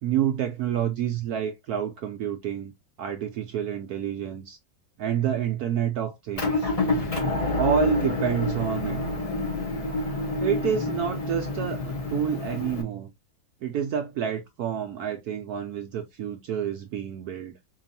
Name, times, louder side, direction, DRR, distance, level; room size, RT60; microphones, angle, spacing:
voice 1, 0.0-2.7 3.0-4.6 5.0-6.7 7.5-9.0 10.4-13.1 13.6-17.5, right 9 dB, 85° right, 0.8 m, -28 dB
Motor vehicle (road) / Engine, 6.4-12.8, left 2 dB, 65° left, 0.3 m, -28 dB
4.6 x 3.0 x 2.7 m
omnidirectional pair, 2.2 m